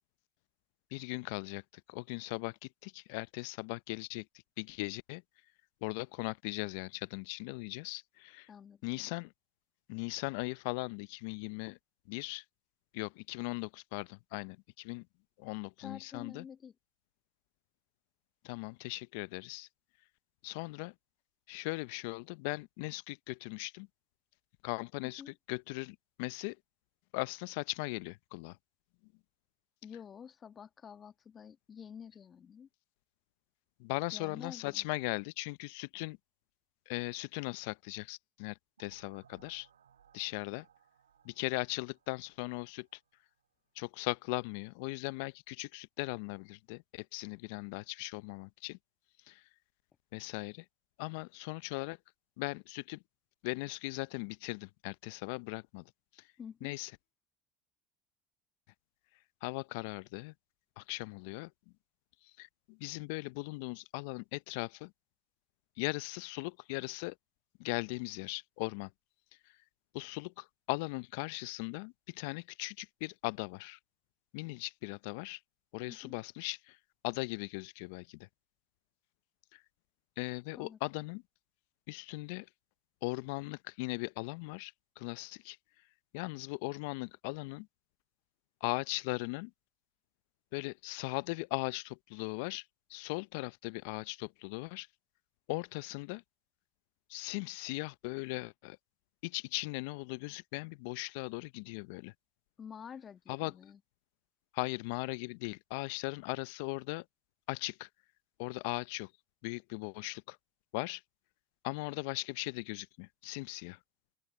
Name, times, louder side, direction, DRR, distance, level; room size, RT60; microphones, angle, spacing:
voice 1, 0.9-1.6 1.9-4.3 4.6-5.2 5.8-8.5 8.8-9.3 9.9-11.8 12.1-12.4 12.9-15.1 15.4-16.4 18.4-19.7 20.4-20.9 21.5-23.9 24.6-26.6 27.1-28.6 33.8-36.2 36.9-39.7 40.1-40.7 41.2-43.0 43.8-48.8 49.3-49.4 50.1-50.6 51.0-52.0 52.4-53.0 53.4-56.3 56.6-56.9 59.4-60.3 60.8-61.5 62.4-64.9 65.8-67.2 67.6-68.9 69.9-73.8 74.3-75.4 75.7-76.8 77.0-78.3 79.5-79.6 80.2-81.2 81.9-82.5 83.0-85.6 86.1-87.7 88.6-89.5 90.5-94.9 95.5-96.2 97.1-98.8 99.2-102.1 103.3-103.5 104.5-107.1 107.5-107.9 108.4-109.1 109.4-110.4 110.7-111.0 111.6-113.8, left 26 dB, 70° left, 0.6 m, -39 dB
voice 2, 8.5-8.8 15.8-16.7 25.2-25.3 29.8-32.7 34.1-34.9 56.4-56.8 75.8-76.2 80.6-80.8 102.6-103.8, left 7 dB, 40° left, 1.8 m, -49 dB
sound 1, 38.8-43.5, right 9 dB, 90° right, 1.8 m, -66 dB
open air
hypercardioid pair, 65°, 0 cm